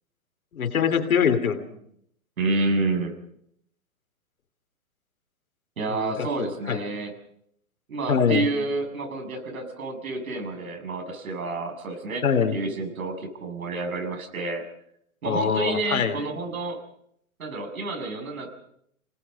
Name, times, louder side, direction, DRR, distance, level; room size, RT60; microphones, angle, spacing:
voice 1, 0.5-1.7 5.9-6.8 8.1-8.5 12.2-12.6 15.2-16.2, left 7 dB, 80° left, 10 dB, 3.0 m, -24 dB
voice 2, 2.4-3.1 5.8-7.1 7.9-12.2 12.5-14.6 15.2-16.8 17.4-18.5, right 3 dB, 75° right, 4 dB, 7.2 m, -29 dB
27.5 x 19.5 x 5.4 m, 0.71 s
hypercardioid pair, 140°, 42 cm